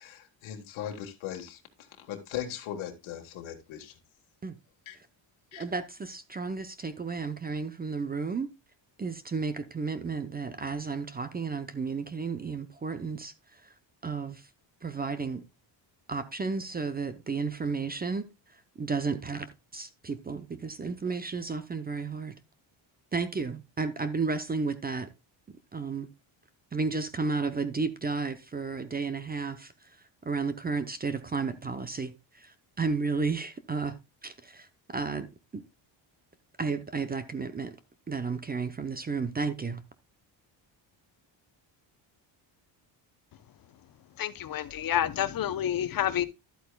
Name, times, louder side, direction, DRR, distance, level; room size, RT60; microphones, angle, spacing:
voice 1, 0.0-4.0 4.9-5.0 5.5-5.6, left 10 dB, 85° left, 1.6 m, -39 dB
voice 2, 5.5-8.5 9.0-13.7 14.0-14.5 14.8-15.4 16.1-18.3 18.8-19.5 19.7-22.4 23.1-25.1 25.7-26.1 26.7-29.7 30.2-34.0 34.2-35.3 35.5-35.6 36.6-37.8 38.1-39.8, right 4 dB, 20° right, 0.6 m, -32 dB
voice 3, 44.2-46.3, left 10 dB, 45° left, 0.8 m, -29 dB
12.0 x 8.3 x 2.2 m
cardioid pair, 135°, 47 cm